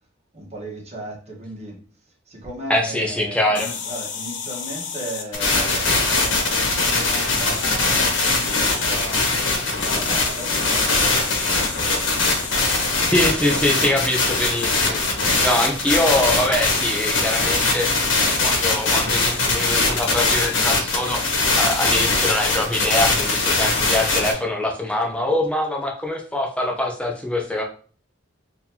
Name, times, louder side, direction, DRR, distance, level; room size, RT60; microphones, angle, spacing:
voice 1, 0.3-1.8 2.3-9.3 9.8-12.2 12.5-13.3, right 1 dB, 35° right, 1.2 m, -36 dB
voice 2, 2.7-3.7 13.1-15.0 15.3-17.9 18.2-27.6, left 1 dB, 5° left, 0.5 m, -23 dB
sound 1, 3.5-5.3 6.1-6.5 7.2-7.7 8.1-8.9 9.8-12.9 13.4-13.6 14.6-14.9 15.5-16.3 16.6-17.0 17.7-18.4 19.1-20.8 21.1-21.9, left 6 dB, 65° left, 0.6 m, -34 dB
sound 2, 5.3-24.3, left 3 dB, 85° left, 1.1 m, -21 dB
4.1 x 2.8 x 2.8 m
head